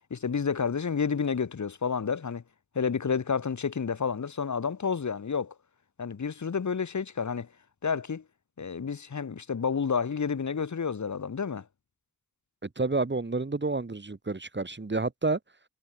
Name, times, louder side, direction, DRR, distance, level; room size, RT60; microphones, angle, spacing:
voice 1, 0.1-2.4 2.7-5.5 6.0-7.5 7.8-8.2 8.6-11.6, left 6 dB, 60° left, 6.0 m, -30 dB
voice 2, 12.8-15.4, right 3 dB, 35° right, 7.2 m, -29 dB
supercardioid pair, 45°, 33 cm